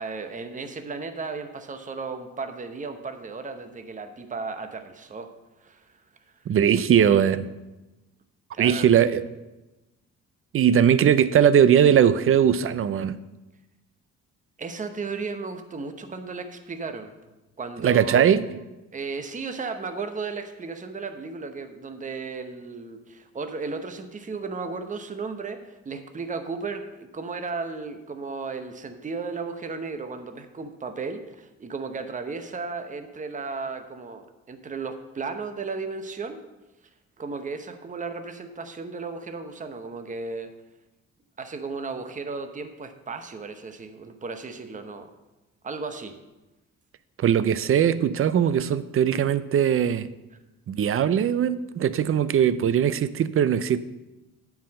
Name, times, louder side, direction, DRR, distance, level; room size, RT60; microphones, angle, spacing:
voice 1, 0.0-5.3 5.6-5.8 8.5-8.9 14.6-17.1 17.6-18.3 18.9-36.4 37.2-40.5 41.4-45.1 45.6-46.1, right 4 dB, 25° right, 0.9 m, -35 dB
voice 2, 6.5-7.5 8.6-9.2 10.5-13.2 17.8-18.4 47.2-50.1 50.7-53.8, right 9 dB, 45° right, 0.6 m, -20 dB
9.0 x 4.9 x 7.6 m
cardioid pair, 90°, 30 cm